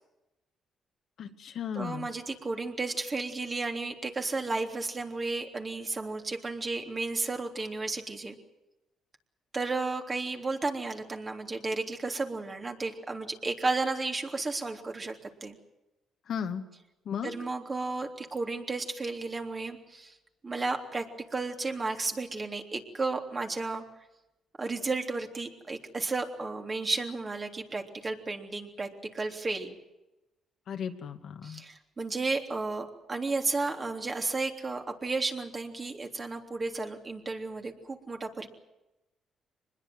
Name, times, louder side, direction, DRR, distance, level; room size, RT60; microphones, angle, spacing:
voice 1, 1.2-2.1 16.3-16.6 17.1-17.3 30.7-31.6, left 7 dB, 65° left, 6 dB, 2.2 m, -35 dB
voice 2, 1.7-8.3 9.5-15.6 17.2-20.1 20.4-21.0 21.3-23.8 24.6-28.9 29.1-29.8 31.4-38.5, right 3 dB, 30° right, 3 dB, 3.4 m, -33 dB
24.5 x 21.0 x 7.8 m, 0.97 s
cardioid pair, 90°, 0 cm